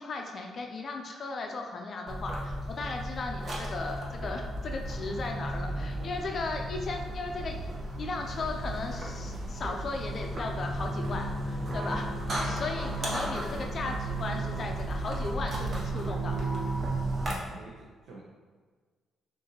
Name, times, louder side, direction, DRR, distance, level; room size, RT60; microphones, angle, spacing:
voice 1, 0.0-7.6 8.0-12.1 12.4-16.5, left 3 dB, 50° left, 3 dB, 0.4 m, -36 dB
sound 1, 2.1-17.3, right 1 dB, 45° right, 1.1 m, -34 dB
sound 2, 4.8-16.8, equal, 10° left, 1.0 m, -49 dB
voice 2, 5.1-6.1 11.6-12.1 12.4-12.7 17.2-18.2, right 3 dB, 70° right, -4 dB, 0.7 m, -47 dB
sound 3, 8.2-15.3, equal, 5° right, 1.2 m, -53 dB
6.3 x 2.6 x 2.8 m, 1.5 s
cardioid pair, 90°, 0 cm